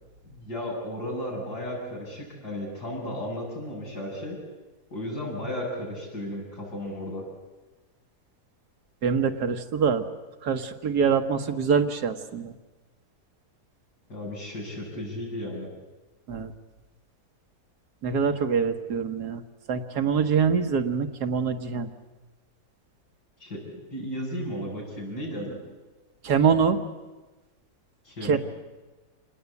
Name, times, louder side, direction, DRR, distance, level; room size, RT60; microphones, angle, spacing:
voice 1, 0.2-4.4 4.9-7.2 14.1-15.7 23.4-25.6 28.0-28.4, left 1 dB, 85° left, -2 dB, 7.7 m, -34 dB
voice 2, 9.0-10.0 10.4-12.5 16.3-16.5 18.0-19.4 19.7-21.9 26.2-26.8 28.2-28.4, right 6 dB, 75° right, 7 dB, 1.9 m, -24 dB
27.0 x 20.0 x 8.3 m, 1.2 s
omnidirectional pair, 1.7 m